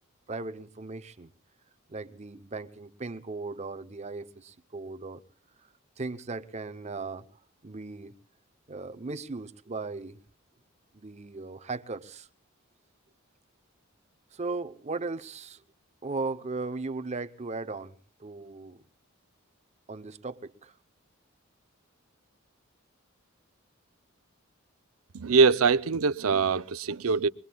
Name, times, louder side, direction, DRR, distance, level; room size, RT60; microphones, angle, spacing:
voice 1, 0.3-1.3 1.9-5.2 6.0-7.3 7.6-8.1 8.7-10.2 10.9-12.3 14.3-15.6 16.0-18.8 19.9-20.7, right 3 dB, 35° right, 0.7 m, -37 dB
voice 2, 25.1-27.3, right 4 dB, 90° right, 0.6 m, -23 dB
23.5 x 22.0 x 2.3 m
head